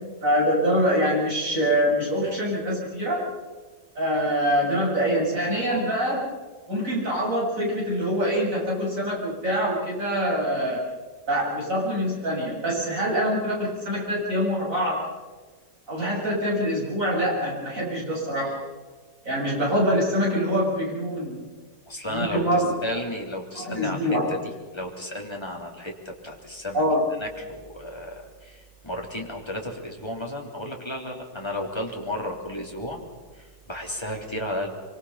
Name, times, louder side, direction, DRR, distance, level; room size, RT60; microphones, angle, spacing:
voice 1, 0.2-3.2 3.9-6.3 6.7-10.8 11.3-15.0 15.9-18.6 19.2-21.4 22.1-22.7 23.5-24.3 26.7-27.0, equal, 45° right, -4 dB, 8.3 m, -24 dB
voice 2, 21.9-26.8 27.2-33.0 33.3-34.7, left 1 dB, 15° left, 0 dB, 3.5 m, -33 dB
25.5 x 25.0 x 5.8 m, 1.4 s
omnidirectional pair, 2.0 m